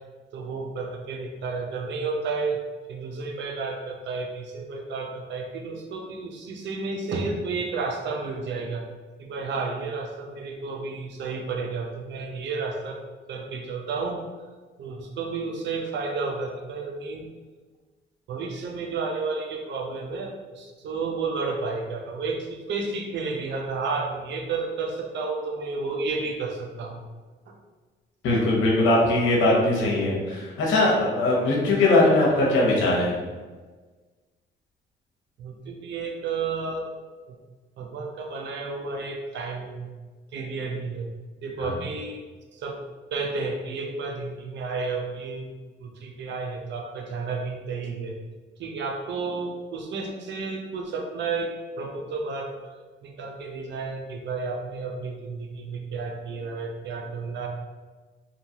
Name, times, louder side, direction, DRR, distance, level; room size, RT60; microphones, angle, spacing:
voice 1, 0.3-2.6 2.9-8.8 9.2-13.0 13.3-14.2 14.8-17.3 18.3-27.0 27.5-27.6 35.4-36.9 37.3-37.4 37.8-39.9 40.3-41.1 41.4-42.2 42.5-42.8 43.1-45.5 45.8-48.1 48.6-52.5 53.0-57.5, right 4 dB, 65° right, 2 dB, 0.5 m, -31 dB
voice 2, 28.2-33.2 41.6-41.7, left 2 dB, 80° left, -3 dB, 0.8 m, -21 dB
2.7 x 2.2 x 2.8 m, 1.4 s
cardioid pair, 90°, 20 cm